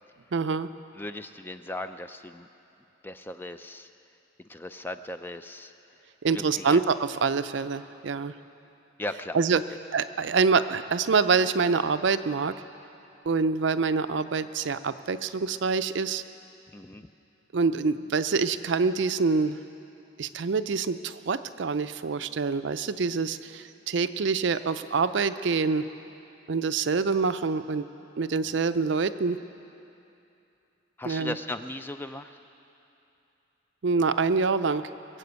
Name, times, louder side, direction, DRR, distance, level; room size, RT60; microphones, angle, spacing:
voice 1, 0.3-0.7 6.2-8.3 9.3-9.6 9.9-12.5 13.3-16.2 17.5-19.6 20.2-25.9 26.5-27.9 28.2-29.4 31.0-31.3 33.8-34.9, right 4 dB, 60° right, 12 dB, 0.5 m, -26 dB
voice 2, 1.0-2.5 3.0-3.9 4.5-5.7 6.3-6.8 9.0-9.4 16.7-17.1 31.0-32.3, left 1 dB, 10° left, 9 dB, 0.3 m, -37 dB
22.0 x 7.6 x 8.1 m, 2.8 s
head